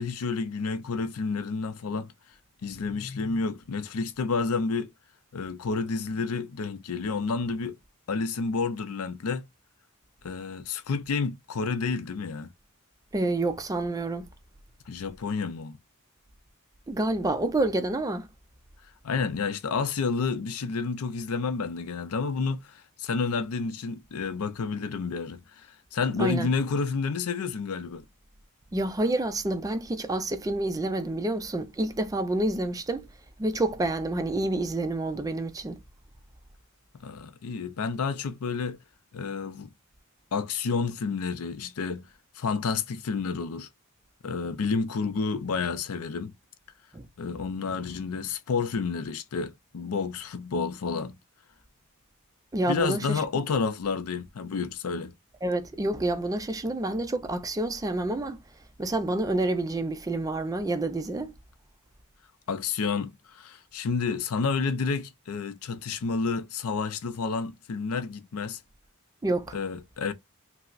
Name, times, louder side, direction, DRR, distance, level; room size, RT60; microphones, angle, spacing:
voice 1, 0.0-2.1 2.6-4.9 5.3-7.8 8.1-9.4 10.2-12.5 14.9-15.8 19.0-28.0 37.0-38.8 39.1-39.7 40.3-42.1 42.4-43.7 44.2-46.3 47.2-51.2 52.7-55.1 62.5-68.6 69.5-70.1, left 4 dB, 80° left, 0.5 m, -30 dB
voice 2, 13.1-14.3 16.9-18.3 26.2-26.5 28.7-33.1 33.4-35.8 46.9-47.1 52.5-53.2 55.4-58.4 58.8-61.3 69.2-69.6, right 2 dB, 15° right, 0.3 m, -28 dB
5.4 x 2.0 x 2.4 m
head